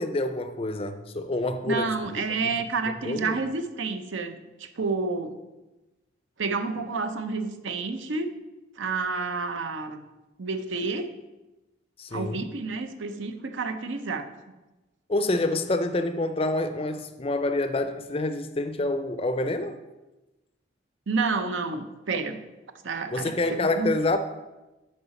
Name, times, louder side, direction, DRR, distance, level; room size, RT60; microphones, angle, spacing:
voice 1, 0.0-2.2 3.0-3.4 12.0-12.5 15.1-19.8 23.1-24.2, left 2 dB, 30° left, 10 dB, 0.4 m, -27 dB
voice 2, 1.7-5.4 6.4-8.3 8.8-10.1 10.4-11.1 12.1-14.3 21.1-22.4 22.8-24.0, right 4 dB, 75° right, 8 dB, 0.7 m, -29 dB
6.8 x 4.8 x 7.0 m, 1.1 s
head